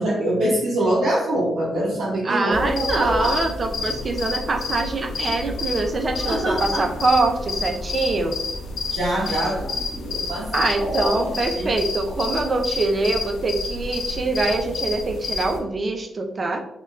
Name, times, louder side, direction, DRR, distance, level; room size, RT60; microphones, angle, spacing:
voice 1, 0.0-3.4 6.2-6.9 8.9-11.7, right 1 dB, 80° right, -9 dB, 1.0 m, -24 dB
voice 2, 2.2-8.4 10.5-16.6, right 3 dB, 45° right, 5 dB, 0.6 m, -24 dB
sound 1, 2.5-15.6, left 3 dB, 75° left, 0.5 m, -29 dB
3.0 x 2.3 x 3.2 m, 0.82 s
supercardioid pair, 45°, 0 cm